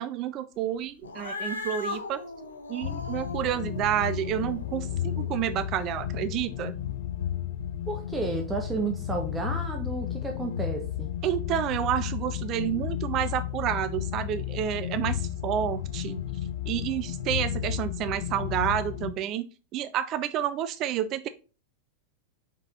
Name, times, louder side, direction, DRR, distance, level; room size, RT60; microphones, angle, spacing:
voice 1, 0.0-2.2 2.7-6.8 11.2-16.2 16.7-19.5 19.7-21.3, right 11 dB, 35° right, 12 dB, 0.4 m, -29 dB
Cat, 1.0-5.7, left 3 dB, 75° left, 1.0 m, -39 dB
sound 1, 2.8-19.1, left 10 dB, 60° left, 0.7 m, -33 dB
voice 2, 7.9-11.1, right 3 dB, 10° right, 2 dB, 1.1 m, -32 dB
5.2 x 4.9 x 4.2 m, 0.34 s
figure-of-eight pair, 90°, 0 cm